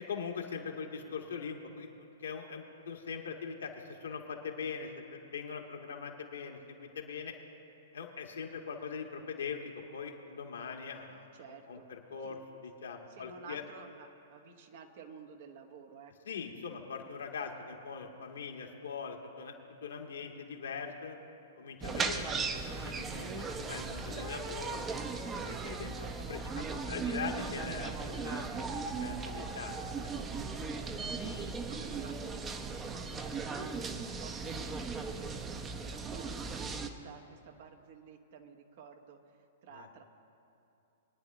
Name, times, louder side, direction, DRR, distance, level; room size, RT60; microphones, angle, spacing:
voice 1, 0.1-7.3 7.9-11.3 11.7-13.6 16.2-19.5 19.8-21.2 21.6-22.5 22.8-24.8 25.4-28.5 29.0-29.8 39.7-39.9, left 6 dB, 75° left, 1 dB, 1.7 m, -41 dB
voice 2, 11.3-12.4 13.1-16.1 30.7-31.2 31.7-40.0, right 5 dB, 55° right, 5 dB, 1.2 m, -53 dB
sound 1, 21.8-36.9, right 4 dB, 20° right, 0.8 m, -37 dB
23.5 x 9.7 x 3.0 m, 2.8 s
figure-of-eight pair, 110°, 0 cm